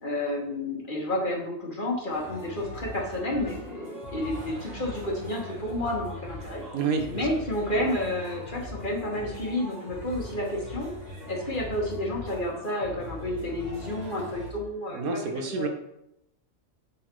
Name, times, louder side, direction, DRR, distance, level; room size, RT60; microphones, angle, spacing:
voice 1, 0.0-6.6 7.1-10.9 11.3-15.0 15.6-15.7, left 1 dB, 40° left, -1 dB, 1.2 m, -30 dB
sound 1, 2.1-14.5, equal, 30° right, 1.5 m, -40 dB
voice 2, 6.7-7.3 14.9-15.7, right 4 dB, 85° right, 4 dB, 1.3 m, -29 dB
6.3 x 4.0 x 4.4 m, 0.81 s
omnidirectional pair, 1.5 m